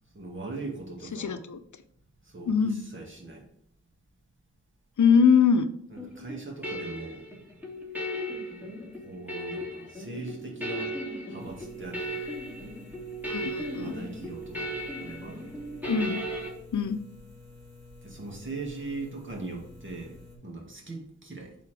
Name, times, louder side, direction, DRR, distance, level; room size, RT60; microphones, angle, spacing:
voice 1, 0.1-1.4 2.2-3.5 5.9-7.3 9.0-11.0 11.3-12.2 13.8-15.6 18.0-21.6, right 3 dB, 40° right, 1.9 m, -40 dB
voice 2, 1.1-1.6 2.5-2.8 5.0-5.7 13.3-13.9 15.9-16.2 16.7-17.0, left 6 dB, 80° left, 0.6 m, -22 dB
sound 1, 6.0-16.5, right 1 dB, 5° right, 2.6 m, -36 dB
sound 2, 11.4-20.4, left 2 dB, 60° right, 2.4 m, -50 dB
8.3 x 4.2 x 3.4 m
wide cardioid pair, 65°, 29 cm